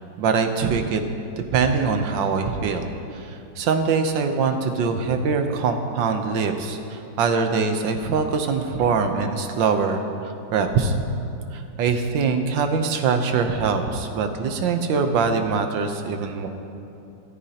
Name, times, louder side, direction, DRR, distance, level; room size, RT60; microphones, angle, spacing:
voice 1, 0.2-1.0 1.4-10.9 11.5-16.5, right 5 dB, 75° right, 6 dB, 1.5 m, -23 dB
14.0 x 13.5 x 2.9 m, 2.7 s
omnidirectional pair, 2.1 m